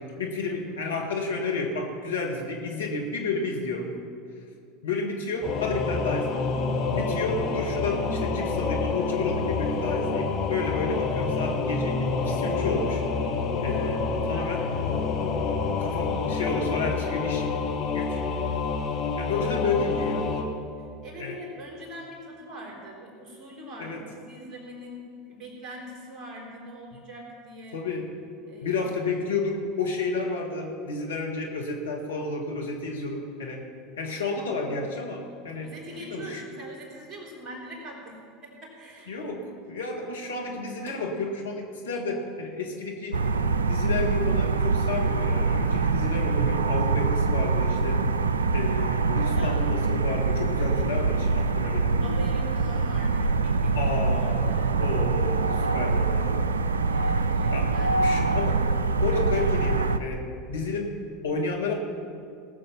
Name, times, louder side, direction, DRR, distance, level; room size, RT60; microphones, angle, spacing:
voice 1, 0.0-3.9 4.8-6.4 6.9-13.0 13.6-14.7 15.8-17.5 17.9-18.2 19.2-20.3 21.2-21.4 23.8-24.0 27.7-28.1 28.6-33.7 34.0-35.7 36.0-36.4 39.1-43.2 43.7-48.0 48.5-51.9 53.7-56.4 57.5-60.2 60.5-61.7, left 3 dB, 75° left, 0 dB, 1.8 m, -31 dB
Singing / Musical instrument, 5.4-20.4, left 4 dB, 45° left, 1.5 m, -28 dB
voice 2, 14.3-14.9 20.8-27.8 28.4-28.9 35.6-39.2 49.3-49.6 50.5-50.9 52.0-54.8 56.9-58.1, right 1 dB, 30° right, -1 dB, 3.8 m, -43 dB
sound 1, 43.1-60.0, right 4 dB, 75° right, 0.4 m, -24 dB
18.5 x 7.3 x 5.7 m, 2.4 s
figure-of-eight pair, 75°, 0 cm